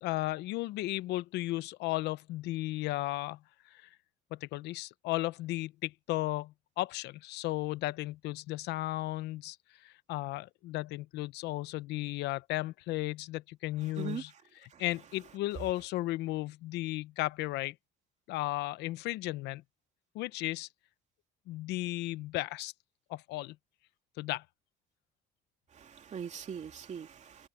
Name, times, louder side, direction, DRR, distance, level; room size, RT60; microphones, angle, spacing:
voice 1, 0.0-3.4 3.7-3.9 4.3-9.6 9.8-14.3 14.6-17.7 18.3-19.6 20.1-20.7 21.5-22.7 23.1-23.6 24.2-24.4, left 18 dB, 85° left, 0.8 m, -35 dB
voice 2, 25.7-27.5, right 7 dB, 45° right, 2.8 m, -41 dB
cardioid pair, 110°, 17 cm